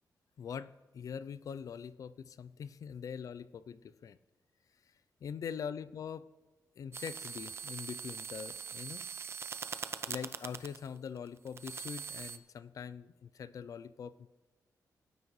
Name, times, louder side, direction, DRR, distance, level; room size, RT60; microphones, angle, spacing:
voice 1, 0.4-4.2 5.2-6.3 6.8-9.1 10.1-14.3, left 7 dB, 60° left, 15 dB, 0.4 m, -43 dB
sound 1, 6.9-12.4, right 6 dB, 40° right, 0.5 m, -42 dB
17.5 x 9.5 x 3.1 m, 1.2 s
wide cardioid pair, 150°, 7 cm